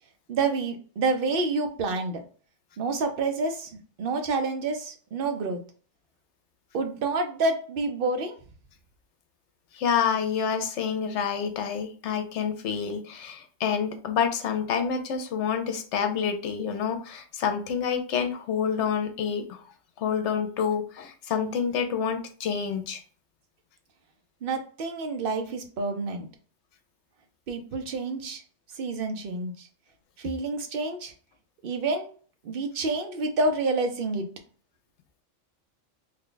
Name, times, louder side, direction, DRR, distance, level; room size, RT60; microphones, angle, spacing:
voice 1, 0.3-2.2 2.8-5.6 6.7-8.4 24.4-26.3 27.5-28.4 28.7-29.7 30.2-31.1 31.6-32.1 32.4-34.2, right 3 dB, 55° right, 6 dB, 0.8 m, -28 dB
voice 2, 9.7-19.6 20.0-23.0, left 7 dB, 70° left, 7 dB, 0.9 m, -28 dB
3.3 x 2.3 x 3.8 m, 0.41 s
omnidirectional pair, 1.3 m